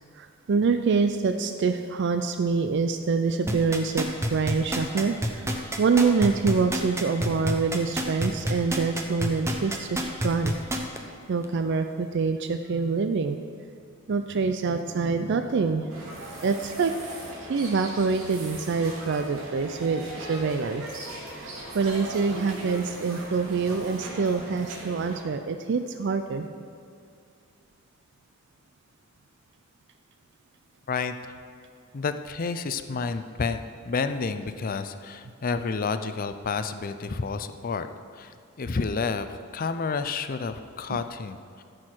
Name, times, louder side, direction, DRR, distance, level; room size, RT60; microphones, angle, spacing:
voice 1, 0.2-5.5 5.8-10.5 11.3-13.4 14.1-15.9 16.4-16.9 17.5-20.8 21.3-26.4, right 4 dB, 60° right, 7 dB, 0.4 m, -25 dB
sound 1, 3.5-11.0 11.4-11.5, equal, 15° right, 0.8 m, -27 dB
sound 2, 15.9-25.2, right 1 dB, 80° right, 2.3 m, -39 dB
voice 2, 30.9-31.4 31.9-37.9 38.1-41.6, left 4 dB, 45° left, 10 dB, 0.5 m, -30 dB
14.0 x 6.3 x 4.5 m, 2.4 s
head